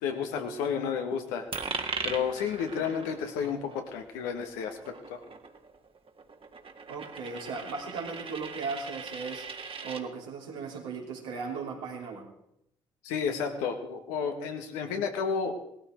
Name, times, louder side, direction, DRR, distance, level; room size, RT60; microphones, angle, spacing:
voice 1, 0.0-1.5 2.0-5.2 13.0-15.6, left 6 dB, 85° left, 5 dB, 1.6 m, -31 dB
Coin (dropping), 1.5-10.0, right 4 dB, 40° right, 1.7 m, -40 dB
voice 2, 6.9-9.4 9.8-12.3, right 4 dB, 90° right, -2 dB, 3.1 m, -37 dB
18.0 x 13.5 x 4.5 m, 0.76 s
hypercardioid pair, 50°, 14 cm